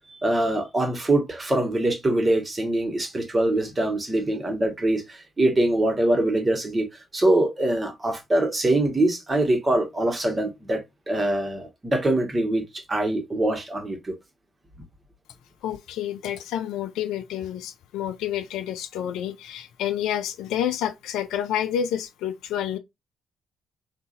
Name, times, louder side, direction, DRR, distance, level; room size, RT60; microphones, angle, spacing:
voice 1, 0.2-6.9 7.1-14.1, right 1 dB, 30° right, 1.3 m, -23 dB
voice 2, 15.6-22.8, left 10 dB, 75° left, 0.3 m, -29 dB
3.8 x 2.6 x 2.5 m
hypercardioid pair, 45°, 0 cm